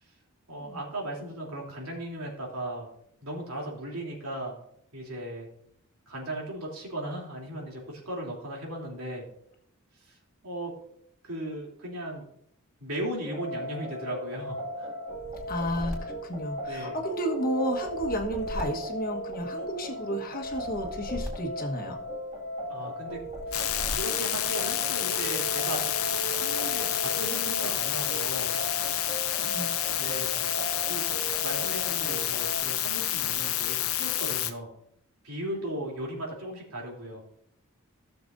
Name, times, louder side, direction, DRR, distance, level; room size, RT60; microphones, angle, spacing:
voice 1, 0.5-2.9 3.2-4.6 4.9-5.5 6.1-9.2 10.0-10.2 10.4-10.7 11.2-12.3 12.8-14.9 16.6-17.0 22.7-23.2 23.5-25.8 26.4-28.5 29.9-30.4 30.8-31.1 31.4-34.7 35.2-37.2, right 1 dB, 80° right, -2 dB, 3.1 m, -37 dB
sound 1, 13.2-32.6, equal, 30° right, 2.0 m, -36 dB
sound 2, 15.1-17.1 17.8-19.7 20.4-22.3 23.1-24.4, equal, ahead, 3.5 m, -40 dB
voice 2, 15.5-22.0 29.4-29.7, equal, 40° left, 3 dB, 1.4 m, -32 dB
sound 3, 23.5-34.5, left 12 dB, 70° left, 0.7 m, -29 dB
16.5 x 6.9 x 2.6 m, 0.71 s
head